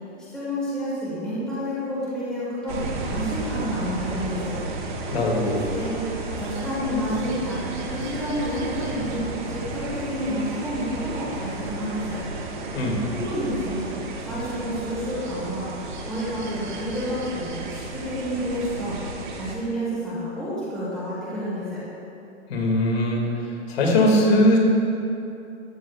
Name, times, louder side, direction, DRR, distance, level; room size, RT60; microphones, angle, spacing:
voice 1, 0.3-4.6 5.5-12.2 13.1-13.9 14.2-15.7 16.1-19.0 19.4-21.8, equal, ahead, -11 dB, 1.3 m, -29 dB
sound 1, 2.7-19.6, right 2 dB, 45° right, 1.2 m, -33 dB
voice 2, 5.1-5.6 12.7-13.0 22.5-23.2 23.7-24.6, left 1 dB, 60° left, -2 dB, 2.3 m, -20 dB
14.0 x 9.3 x 2.4 m, 2.7 s
hypercardioid pair, 180°, 35 cm